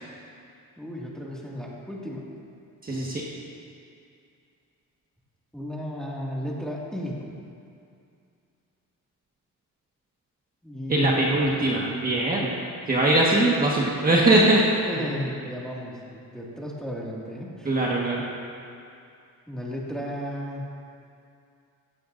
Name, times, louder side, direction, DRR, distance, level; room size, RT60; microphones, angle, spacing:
voice 1, 0.8-2.3 5.5-7.3 10.6-11.2 14.9-17.8 19.5-20.7, equal, ahead, -5 dB, 2.0 m, -34 dB
voice 2, 2.8-3.2 10.9-12.6 12.9-14.6 17.6-18.2, right 2 dB, 25° right, -4 dB, 1.5 m, -21 dB
16.0 x 15.5 x 2.6 m, 2.5 s
cardioid pair, 145°, 32 cm